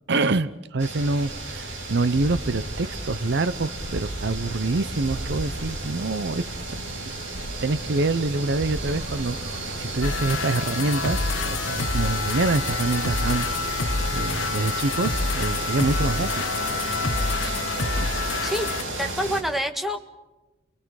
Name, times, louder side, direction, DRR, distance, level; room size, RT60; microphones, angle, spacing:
voice 1, 0.1-6.4 7.6-16.4 17.1-17.6 18.0-18.2, right 3 dB, 60° right, 15 dB, 0.7 m, -26 dB
sound 1, 0.8-19.4, right 2 dB, 80° right, 6.4 m, -33 dB
sound 2, 2.0-14.5, right 1 dB, 30° right, 7.3 m, -39 dB
sound 3, 10.0-18.8, left 4 dB, 80° left, 1.3 m, -27 dB
voice 2, 19.0-20.0, equal, ahead, 5 dB, 1.6 m, -26 dB
30.0 x 22.5 x 4.8 m, 1.1 s
head